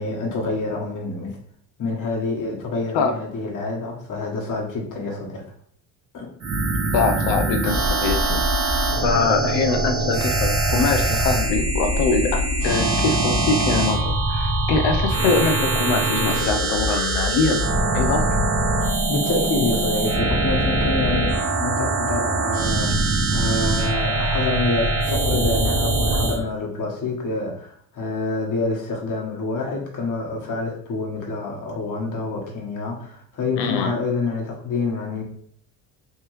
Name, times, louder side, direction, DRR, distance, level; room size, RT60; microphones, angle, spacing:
voice 1, 0.0-1.4 1.8-5.4 6.1-6.3 19.1-35.2, left 3 dB, 45° left, -1 dB, 1.4 m, -27 dB
sound 1, 6.4-26.4, right 2 dB, 35° right, 0.9 m, -22 dB
voice 2, 6.9-17.6 17.9-18.3 33.6-34.0, left 4 dB, 85° left, 5 dB, 0.7 m, -23 dB
3.4 x 3.0 x 3.1 m, 0.64 s
cardioid pair, 95°, 41 cm